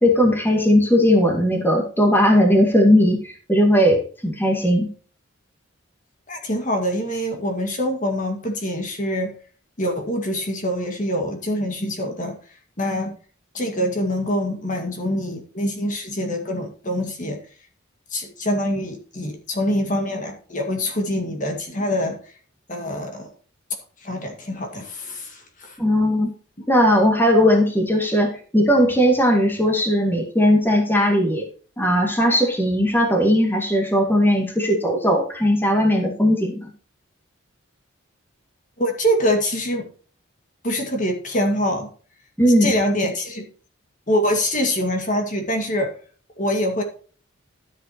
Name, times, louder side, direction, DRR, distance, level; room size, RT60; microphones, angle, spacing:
voice 1, 0.0-4.9 25.8-26.3 26.7-31.5 31.8-36.7 42.4-42.7, equal, 10° left, 1 dB, 2.1 m, -18 dB
voice 2, 6.3-9.3 9.8-12.3 12.8-13.1 13.5-17.4 18.1-22.2 22.7-23.3 24.0-25.8 38.8-39.9 40.6-41.9 42.6-43.4 44.1-45.9 46.4-46.8, equal, 40° left, 3 dB, 2.0 m, -24 dB
13.0 x 7.9 x 3.0 m, 0.41 s
head